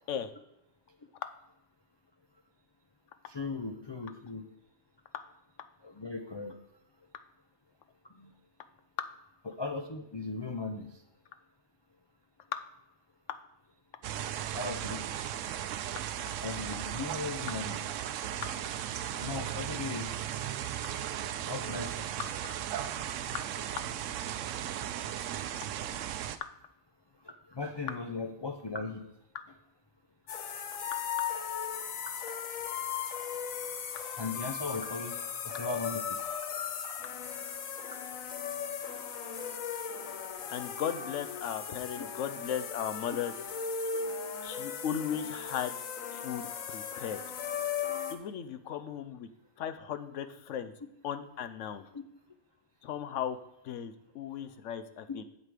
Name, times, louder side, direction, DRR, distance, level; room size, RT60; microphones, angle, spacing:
voice 1, 3.3-4.4 5.8-6.5 8.2-8.3 9.5-10.9 14.5-15.0 16.4-17.8 19.2-20.4 21.5-22.1 26.2-26.3 27.2-29.0 34.2-36.2 42.0-42.1 51.9-52.0 55.1-55.2, left 3 dB, 40° left, 5 dB, 0.3 m, -38 dB
sound 1, 14.0-26.4, right 10 dB, 75° right, 0.9 m, -36 dB
sound 2, 30.3-48.1, left 7 dB, 90° left, 1.2 m, -37 dB
voice 2, 40.5-43.3 44.4-45.7 46.1-47.2 48.1-49.3 49.6-50.7 51.0-51.9 52.8-53.4 53.6-55.2, left 9 dB, 70° left, 11 dB, 1.0 m, -36 dB
7.9 x 7.5 x 5.0 m, 0.87 s
omnidirectional pair, 1.4 m